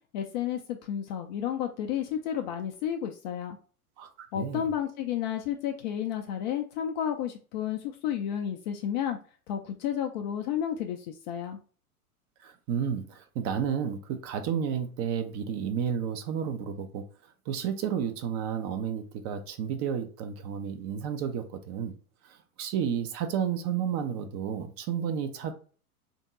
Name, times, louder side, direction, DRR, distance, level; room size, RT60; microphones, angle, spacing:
voice 1, 0.1-3.6 4.3-9.2 9.5-11.6, left 9 dB, 35° left, 0.4 m, -31 dB
voice 2, 4.0-4.7 12.4-17.0 17.5-21.9 22.2-25.5, right 8 dB, 30° right, 0.6 m, -31 dB
3.5 x 2.7 x 4.0 m
figure-of-eight pair, 90°, 45 cm